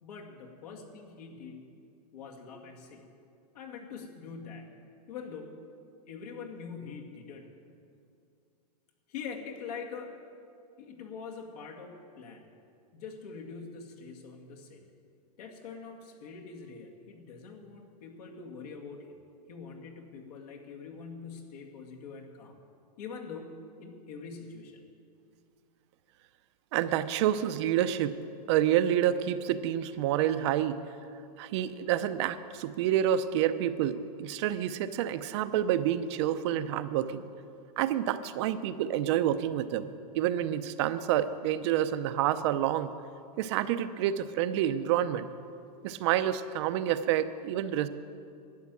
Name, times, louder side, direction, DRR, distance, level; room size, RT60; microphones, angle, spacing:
voice 1, 0.0-1.6 2.1-3.0 3.5-4.7 5.1-5.5 6.1-7.5 9.1-10.2 10.8-12.4 12.9-14.8 15.4-19.2 19.5-22.6 23.0-23.5 23.8-24.8, left 5 dB, 70° left, 1 dB, 2.3 m, -44 dB
voice 2, 26.7-28.2 28.5-30.8 31.4-37.3 37.8-39.9 40.1-42.9 43.4-45.3 45.8-47.9, right 11 dB, 45° right, 12 dB, 0.6 m, -28 dB
12.0 x 9.6 x 7.6 m, 2.5 s
supercardioid pair, 155°, 21 cm